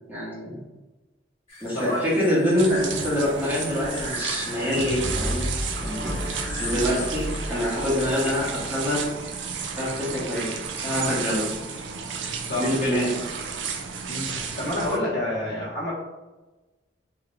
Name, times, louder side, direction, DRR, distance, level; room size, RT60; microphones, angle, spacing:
voice 1, 0.1-0.6 1.6-6.1 6.6-9.0 9.8-11.5 12.4-13.2, equal, 10° right, -8 dB, 1.3 m, -25 dB
sound 1, 1.5-8.4, left 2 dB, 35° left, 1.4 m, -39 dB
voice 2, 1.7-2.0 6.0-6.1 12.5-12.7 14.1-15.9, left 1 dB, 70° left, -9 dB, 1.0 m, -28 dB
sound 2, 2.6-15.0, right 6 dB, 85° right, 0.4 m, -33 dB
Brass instrument, 4.9-9.1, equal, 30° right, 1.0 m, -33 dB
3.7 x 3.2 x 2.2 m, 1.1 s
head